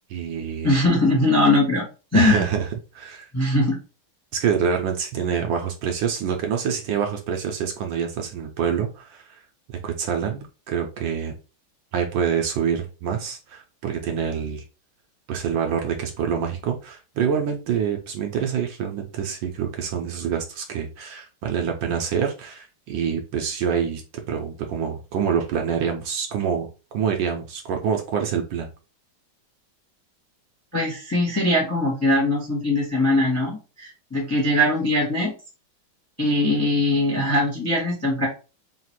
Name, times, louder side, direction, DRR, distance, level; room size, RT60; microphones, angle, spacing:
voice 1, 0.1-0.7 2.1-2.7 2.9-3.3 4.3-9.4 9.7-11.3 11.9-14.6 15.3-24.0 24.3-28.7, right 7 dB, 70° right, 3 dB, 1.3 m, -26 dB
voice 2, 0.6-1.9 2.1-2.4 3.3-3.8 30.7-35.3 36.2-38.3, left 1 dB, 10° left, -2 dB, 0.7 m, -21 dB
3.8 x 2.4 x 4.3 m, 0.33 s
omnidirectional pair, 2.3 m